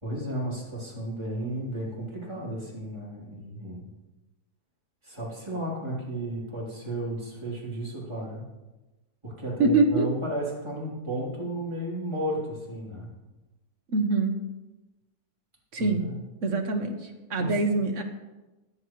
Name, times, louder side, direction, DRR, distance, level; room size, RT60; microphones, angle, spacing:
voice 1, 0.0-3.9 5.0-8.4 9.2-13.1 15.8-16.2 17.4-17.6, right 1 dB, 15° right, -6 dB, 3.4 m, -33 dB
voice 2, 9.6-10.1 13.9-14.4 15.7-16.0 16.4-18.0, right 3 dB, 55° right, 5 dB, 1.3 m, -24 dB
14.0 x 10.5 x 3.1 m, 1.1 s
omnidirectional pair, 1.7 m